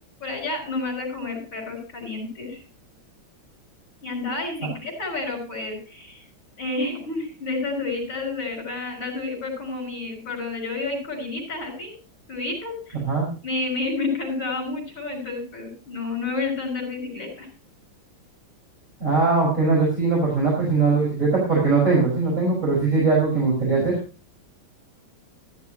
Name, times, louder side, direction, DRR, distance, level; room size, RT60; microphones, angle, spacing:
voice 1, 0.2-2.6 4.0-6.2 6.6-11.9 12.3-13.0 13.4-17.5, left 3 dB, 75° left, -7 dB, 5.6 m, -30 dB
voice 2, 19.0-24.0, right 4 dB, 40° right, -3 dB, 5.7 m, -20 dB
13.0 x 13.0 x 2.9 m, 0.36 s
omnidirectional pair, 2.1 m